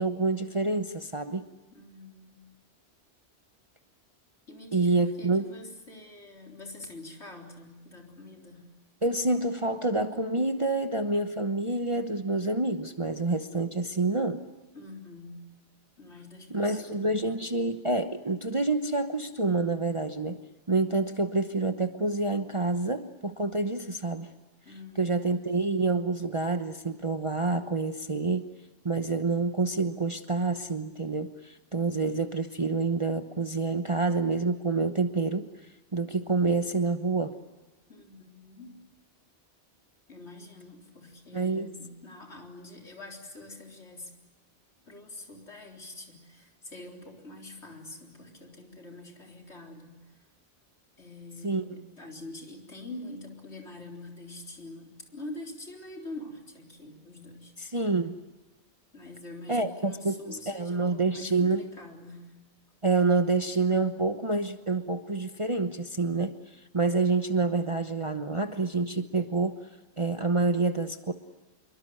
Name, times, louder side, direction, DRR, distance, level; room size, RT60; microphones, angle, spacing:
voice 1, 0.0-1.4 4.7-5.4 9.0-14.4 16.5-20.4 20.7-24.3 25.0-28.4 28.8-35.5 35.9-37.3 41.3-41.7 51.4-51.6 57.6-58.1 59.5-61.6 62.8-66.3 66.7-69.6 70.0-71.1, right 3 dB, 30° right, 7 dB, 1.0 m, -27 dB
voice 2, 1.7-2.4 4.5-8.7 14.7-15.4 16.0-17.4 24.6-25.1 37.9-38.8 40.1-44.1 44.9-50.3 51.0-57.8 58.9-62.4, left 2 dB, 75° left, 2 dB, 4.2 m, -45 dB
26.5 x 23.5 x 7.8 m, 1.1 s
omnidirectional pair, 1.2 m